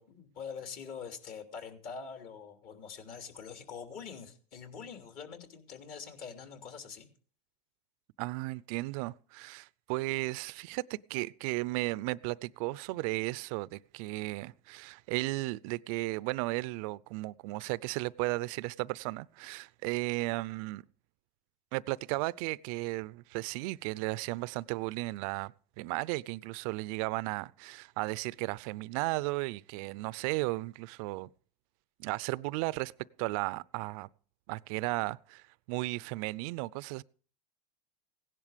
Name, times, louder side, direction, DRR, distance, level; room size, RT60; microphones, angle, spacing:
voice 1, 0.0-7.1, left 6 dB, 45° left, 3.1 m, -44 dB
voice 2, 8.2-20.8 21.7-31.3 32.0-32.9 33.2-34.1 34.5-37.0, right 22 dB, 60° right, 0.6 m, -35 dB
17.0 x 11.0 x 5.1 m
supercardioid pair, 130°, 21 cm